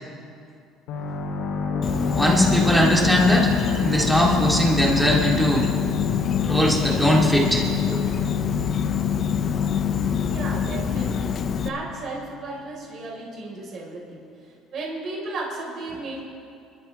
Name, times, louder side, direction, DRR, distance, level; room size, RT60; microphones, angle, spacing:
sound 1, 0.9-12.3, left 6 dB, 80° left, 2.7 m, -27 dB
Insect, 1.8-11.7, left 7 dB, 45° left, 0.7 m, -27 dB
voice 1, 2.1-3.5 3.8-5.7 6.4-8.0, equal, 5° right, -4 dB, 3.1 m, -20 dB
voice 2, 10.3-16.2, right 2 dB, 50° right, -2 dB, 4.3 m, -34 dB
28.0 x 12.5 x 3.4 m, 2.5 s
cardioid pair, 120°, 0 cm